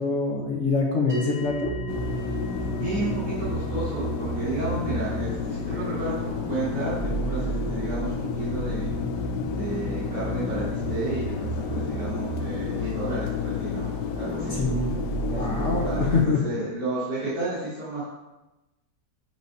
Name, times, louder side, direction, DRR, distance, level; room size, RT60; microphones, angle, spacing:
voice 1, 0.0-1.7 14.5-15.0 15.3-16.4, left 4 dB, 50° left, -2 dB, 1.1 m, -25 dB
sound 1, 1.1-11.6, right 5 dB, 5° right, 1.5 m, -43 dB
sound 2, 1.4-16.1, right 2 dB, 35° left, 2.3 m, -33 dB
sound 3, 1.9-16.3, left 7 dB, 85° left, 1.2 m, -32 dB
voice 2, 2.8-8.9 9.5-13.9 14.1-14.6 15.3-16.1 16.4-18.0, right 2 dB, 70° right, -14 dB, 2.9 m, -32 dB
8.4 x 4.9 x 2.7 m, 1.0 s
omnidirectional pair, 1.8 m